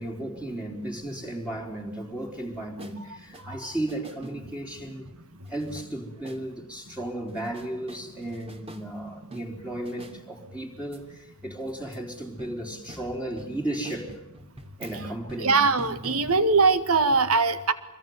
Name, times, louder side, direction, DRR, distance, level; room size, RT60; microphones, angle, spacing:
voice 1, 0.0-5.1 5.5-14.2 14.8-15.6, right 1 dB, 5° right, 3.9 m, -34 dB
sound 1, 2.8-3.0 3.3-4.7 5.4-5.9 6.2-6.4 7.3-8.8 9.3-10.2 10.9-11.0 11.7-12.1 12.4-16.8 17.1-17.2, right 1 dB, 25° right, 3.1 m, -45 dB
voice 2, 15.4-17.7, right 4 dB, 85° right, 1.9 m, -21 dB
26.0 x 22.5 x 9.5 m
head